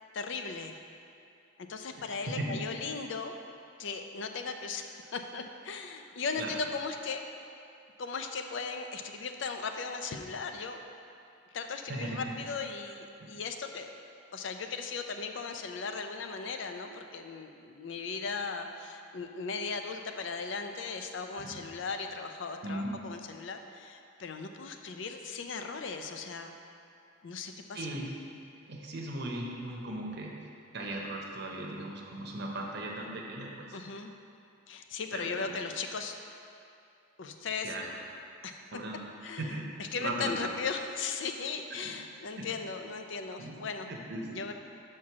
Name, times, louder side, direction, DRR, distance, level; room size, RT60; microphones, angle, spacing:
voice 1, 0.1-0.8 1.6-3.4 3.8-7.2 8.0-10.8 11.5-13.9 14.3-26.5 27.2-27.9 33.7-34.1 34.7-36.1 37.2-37.8 38.4-38.6 39.2-43.9 44.3-44.5, left 4 dB, 60° left, 6 dB, 0.5 m, -37 dB
voice 2, 2.3-2.6 6.4-6.5 11.9-12.2 13.2-13.3 21.4-21.6 22.6-22.9 27.7-28.1 28.7-30.3 30.7-33.8 35.1-35.5 37.6-37.9 38.7-39.0 39.4-39.7 40.0-40.4 41.8-41.9 42.4-42.5 43.4-43.6 43.9-44.4, right 1 dB, 55° right, -1 dB, 0.8 m, -37 dB
6.0 x 4.6 x 5.9 m, 2.6 s
head